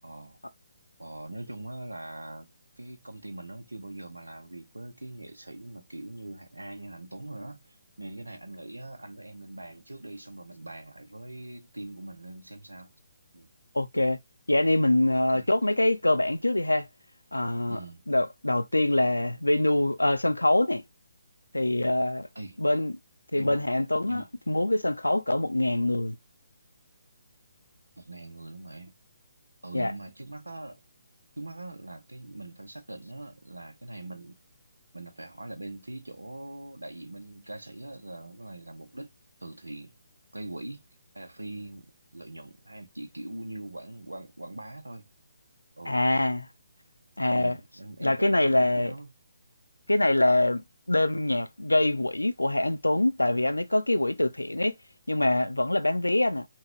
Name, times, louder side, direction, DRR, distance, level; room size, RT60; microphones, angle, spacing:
voice 1, 0.0-0.4 1.0-2.5 2.8-12.9 13.3-13.5 15.3-15.5 17.7-18.0 22.3-22.6 23.4-23.6 24.0-24.3 28.0-29.0 29.6-30.8 31.4-34.3 34.9-39.1 39.4-39.9 40.3-40.8 41.1-45.1 45.8-46.0 47.3-49.1, right 2 dB, 80° right, 0.7 m, -42 dB
voice 2, 13.7-14.2 14.5-16.9 17.3-17.8 18.1-20.8 21.5-22.3 22.6-22.9 23.3-26.2 29.7-29.9 45.9-46.5 47.2-47.6 48.0-48.9 49.9-54.8 55.1-56.5, left 1 dB, 85° left, 0.5 m, -24 dB
5.8 x 2.3 x 3.0 m
figure-of-eight pair, 140°, 0 cm